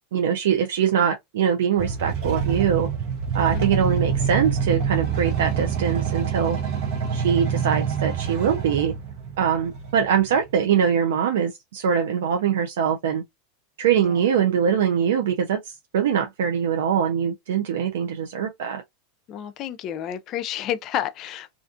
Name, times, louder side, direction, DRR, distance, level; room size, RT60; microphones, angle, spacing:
voice 1, 0.1-2.9 3.3-6.6 7.1-8.9 9.4-13.2 13.8-18.8, right 8 dB, 80° right, 0.4 m, -23 dB
sound 1, 1.8-10.7, right 7 dB, 60° right, 0.9 m, -26 dB
voice 2, 3.5-4.0 14.0-14.2 19.3-21.5, left 10 dB, 45° left, 0.4 m, -31 dB
2.5 x 2.4 x 2.5 m
hypercardioid pair, 115°, 0 cm